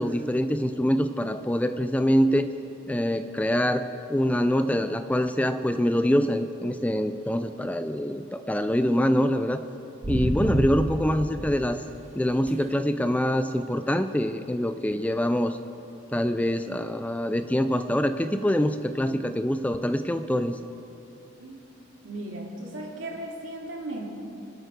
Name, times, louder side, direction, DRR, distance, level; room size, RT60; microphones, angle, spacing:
voice 1, 0.0-2.5 2.9-9.6 10.1-11.8 12.2-15.6 16.1-20.6, equal, 5° left, 10 dB, 0.3 m, -25 dB
sound 1, 10.0-11.6 12.5-12.6 18.5-18.6, right 1 dB, 35° right, 0.6 m, -29 dB
voice 2, 22.0-24.1, right 1 dB, 70° right, -2 dB, 2.8 m, -36 dB
24.5 x 9.1 x 5.0 m, 2.8 s
head